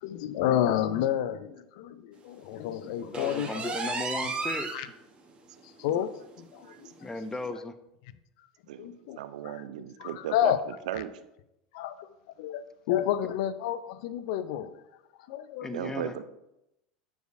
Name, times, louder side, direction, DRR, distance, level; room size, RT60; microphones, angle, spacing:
voice 1, 0.0-3.7 4.7-4.9 5.6-7.1 7.5-7.6 8.8-9.2 9.4-9.7 10.0-10.6 10.9-11.0 11.7-14.8 15.3-15.9, left 11 dB, 60° left, 14 dB, 0.4 m, -30 dB
voice 2, 3.0-4.7 7.0-7.7 15.6-16.1, left 2 dB, 10° left, 10 dB, 0.5 m, -36 dB
sound 1, 3.1-4.9 5.3-5.4 5.8-5.9 6.3-6.4 7.4-7.5, right 3 dB, 25° right, 1.0 m, -33 dB
voice 3, 8.7-10.6 10.9-11.1 15.7-16.2, right 11 dB, 70° right, 12 dB, 0.4 m, -36 dB
9.0 x 4.7 x 2.5 m, 0.87 s
figure-of-eight pair, 80°, 4 cm